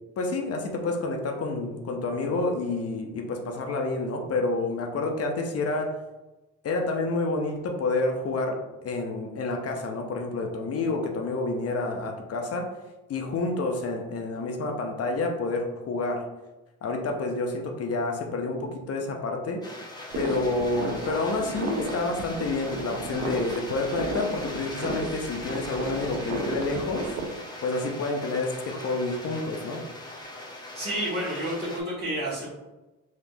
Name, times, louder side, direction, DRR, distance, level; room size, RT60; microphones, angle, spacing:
voice 1, 0.2-6.0 6.6-12.7 13.1-16.3 16.8-19.6 20.2-27.2 27.6-29.8, left 3 dB, 50° left, 2 dB, 0.6 m, -29 dB
sound 1, 19.6-31.8, left 1 dB, 15° left, 0.8 m, -41 dB
sound 2, 20.1-27.3, right 3 dB, 55° right, 0.6 m, -34 dB
voice 2, 30.7-32.5, equal, 35° right, -8 dB, 1.2 m, -30 dB
3.4 x 2.8 x 2.6 m, 1.1 s
cardioid pair, 90°, 30 cm